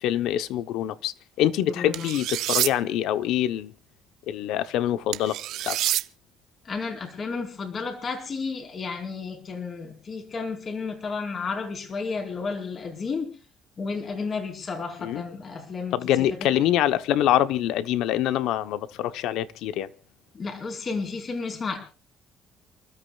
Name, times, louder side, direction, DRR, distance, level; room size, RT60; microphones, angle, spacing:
voice 1, 0.0-3.7 4.3-5.4 5.6-5.8 15.0-15.2 15.9-19.9, left 12 dB, 80° left, 0.9 m, -25 dB
voice 2, 1.6-2.1 6.6-13.3 13.8-16.4 20.3-21.8, left 4 dB, 40° left, 4.6 m, -32 dB
sound 1, 1.9-2.7 5.1-6.0, right 14 dB, 75° right, 0.6 m, -27 dB
29.5 x 13.5 x 2.4 m
cardioid pair, 110°, 0 cm